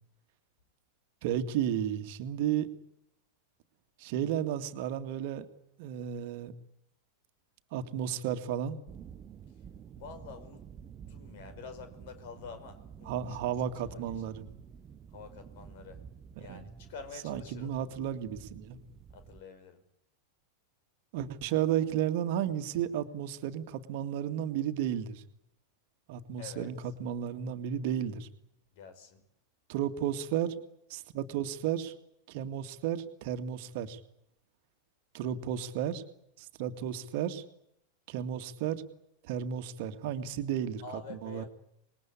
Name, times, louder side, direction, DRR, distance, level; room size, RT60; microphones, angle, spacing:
voice 1, 1.2-2.7 4.0-5.5 5.8-6.5 7.7-8.8 13.1-14.5 16.4-16.6 17.2-18.8 21.1-25.2 26.1-28.3 29.7-30.6 30.9-31.9 32.3-34.0 35.1-36.0 36.4-37.4 38.1-38.9 39.2-40.8 41.1-41.4, right 10 dB, 50° right, 8 dB, 2.1 m, -33 dB
sound 1, 8.9-19.4, right 8 dB, 30° right, 1.1 m, -50 dB
voice 2, 10.0-10.6 11.1-14.1 15.1-16.0 16.4-17.7 19.1-19.8 26.4-26.7 28.7-29.2 40.8-41.5, left 5 dB, 50° left, 10 dB, 5.5 m, -47 dB
26.5 x 21.5 x 8.6 m, 0.76 s
figure-of-eight pair, 90°, 0 cm